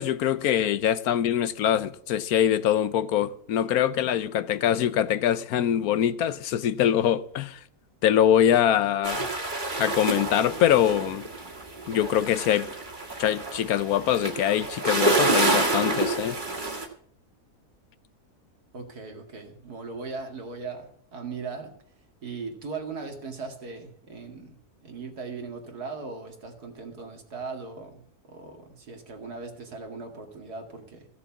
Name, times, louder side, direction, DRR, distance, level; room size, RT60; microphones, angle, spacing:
voice 1, 0.0-7.6 8.0-9.3 9.8-11.3 11.9-12.7 13.2-16.4, left 10 dB, 75° left, 1.1 m, -23 dB
sound 1, 9.0-16.9, right 2 dB, 30° right, 2.0 m, -28 dB
voice 2, 18.7-21.7 22.2-24.6 24.8-31.1, right 4 dB, 85° right, 2.7 m, -38 dB
15.0 x 6.9 x 7.1 m
omnidirectional pair, 1.6 m